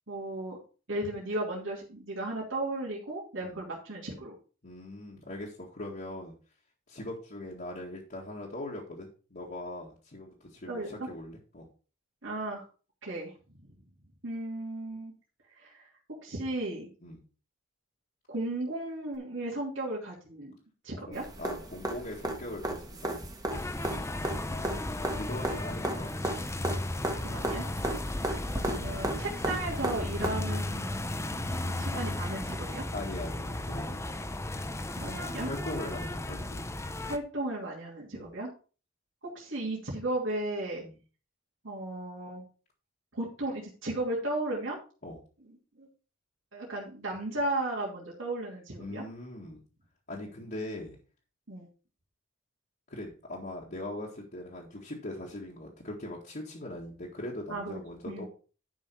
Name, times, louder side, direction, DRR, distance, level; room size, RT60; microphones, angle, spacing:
voice 1, 0.1-0.6 0.9-4.4 10.7-11.1 12.2-12.6 13.0-13.3 14.2-15.1 15.6-15.8 16.2-16.9 18.3-20.5 20.8-21.2 23.9-24.1 27.2-27.6 28.6-32.9 34.9-35.5 37.1-38.5 39.2-40.8 41.6-42.4 43.1-44.8 45.8-45.9 46.5-49.0 51.5-51.7 57.5-57.8 58.1-58.3, right 2 dB, 70° right, -4 dB, 2.6 m, -35 dB
voice 2, 4.6-6.3 6.9-11.7 17.0-17.2 21.1-23.2 24.4-26.4 27.8-28.0 32.9-34.2 35.4-36.7 38.1-38.3 40.8-41.0 45.0-45.2 48.8-49.6 50.1-51.0 52.9-58.3, left 1 dB, 45° left, -5 dB, 1.9 m, -41 dB
sound 1, 21.1-30.3 32.3-32.4, right 1 dB, 20° right, 1.5 m, -35 dB
sound 2, 23.5-37.2, left 1 dB, 15° left, 0.7 m, -35 dB
11.0 x 5.7 x 4.6 m, 0.37 s
head